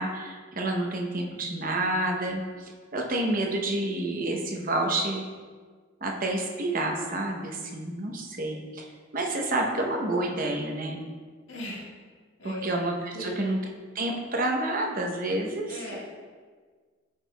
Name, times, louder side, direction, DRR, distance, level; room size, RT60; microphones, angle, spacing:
voice 1, 0.0-5.2 6.0-8.9 9.1-11.0 12.4-13.6 13.9-16.0, right 2 dB, 45° right, 1 dB, 0.8 m, -29 dB
voice 2, 11.5-11.8 12.4-12.6 13.1-13.4 15.7-16.0, left 1 dB, 75° left, -4 dB, 1.6 m, -37 dB
9.3 x 4.6 x 2.2 m, 1.5 s
head